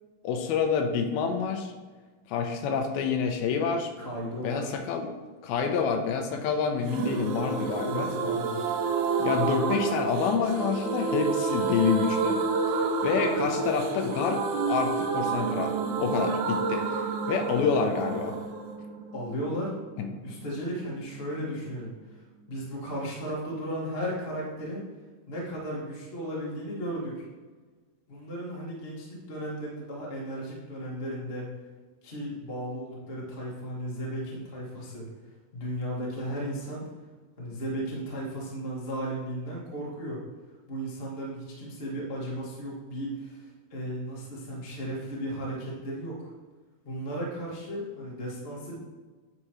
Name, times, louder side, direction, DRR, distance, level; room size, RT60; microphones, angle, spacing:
voice 1, 0.2-1.7 2.3-3.9 4.4-5.1 5.4-8.1 9.2-12.4 13.0-14.4 14.7-18.4 20.0-20.1, left 6 dB, 85° left, 5 dB, 2.5 m, -27 dB
voice 2, 4.0-4.8 7.8-8.6 19.1-19.7 20.2-24.8 25.3-27.2 28.1-31.5 32.0-35.1 35.5-36.9 37.4-40.2 40.7-46.3 46.8-48.8, equal, 60° left, -4 dB, 0.6 m, -35 dB
sound 1, 6.9-20.5 20.7-20.8 21.1-21.2, right 4 dB, 85° right, 2.7 m, -29 dB
9.9 x 4.8 x 3.0 m, 1.3 s
omnidirectional pair, 4.3 m